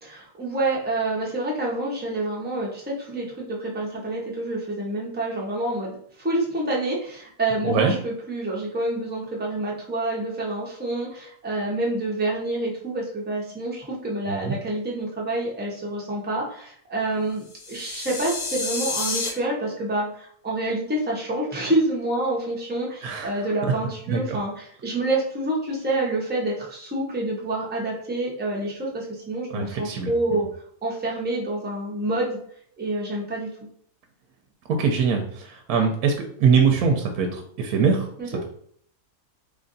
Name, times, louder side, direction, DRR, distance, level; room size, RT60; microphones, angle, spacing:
voice 1, 0.0-5.9 6.2-30.4 30.8-32.4 32.8-33.5 38.2-38.3, right 2 dB, 10° right, -4 dB, 0.7 m, -27 dB
voice 2, 7.6-8.0 14.3-14.6 23.0-23.3 23.6-23.7 24.1-24.4 29.5-30.4 34.7-38.5, right 5 dB, 80° right, 3 dB, 1.1 m, -23 dB
sound 1, 17.5-19.3, left 3 dB, 75° left, 1.3 m, -29 dB
3.3 x 2.5 x 3.9 m, 0.62 s
omnidirectional pair, 1.6 m